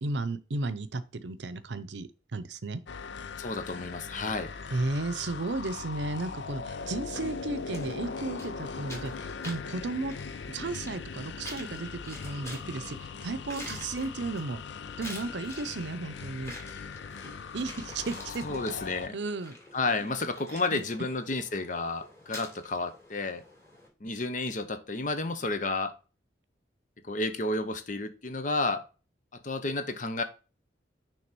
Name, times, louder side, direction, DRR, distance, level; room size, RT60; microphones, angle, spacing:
voice 1, 0.0-2.8 4.7-10.1 10.5-14.6 15.0-16.5 17.5-18.6 19.1-19.6 20.0-20.1 20.7-20.8, right 3 dB, 70° right, 0.7 m, -34 dB
sound 1, 2.9-19.1, left 5 dB, 75° left, 0.5 m, -40 dB
voice 2, 3.4-4.5 18.4-19.2 19.7-23.4 24.0-25.9 27.0-28.9 29.3-30.2, left 3 dB, 45° left, 0.8 m, -31 dB
sound 2, 7.1-23.9, left 1 dB, 15° left, 2.5 m, -48 dB
6.1 x 3.5 x 6.0 m
head